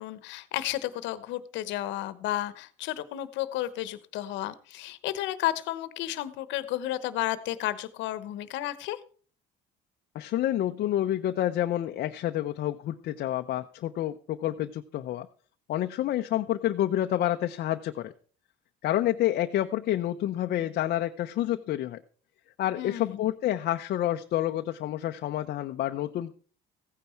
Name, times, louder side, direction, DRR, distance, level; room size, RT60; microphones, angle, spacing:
voice 1, 0.0-9.0 22.8-23.3, left 14 dB, 75° left, 14 dB, 1.1 m, -32 dB
voice 2, 10.1-15.3 15.7-18.1 18.8-22.0 22.6-26.3, left 13 dB, 55° left, 6 dB, 0.7 m, -28 dB
15.5 x 9.4 x 4.5 m, 0.42 s
cardioid pair, 115°, 19 cm